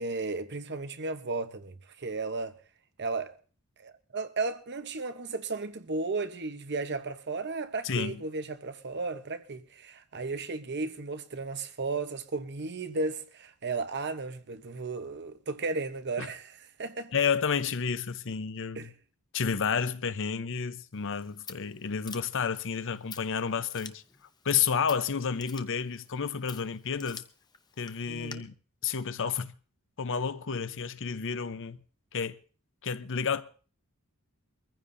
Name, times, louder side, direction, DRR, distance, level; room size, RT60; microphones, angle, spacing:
voice 1, 0.0-2.5 3.0-3.3 3.8-17.1 18.7-18.9 28.1-28.5, right 3 dB, 50° right, 1.0 m, -34 dB
voice 2, 7.8-8.2 16.2-16.3 17.1-18.9 19.3-24.0 24.4-27.2 27.8-28.5 28.8-29.5 30.0-31.8 32.1-32.4 32.8-33.4, left 6 dB, 60° left, 0.8 m, -30 dB
Scissors, 20.9-28.3, left 5 dB, 20° left, 0.7 m, -50 dB
23.5 x 15.0 x 2.7 m
head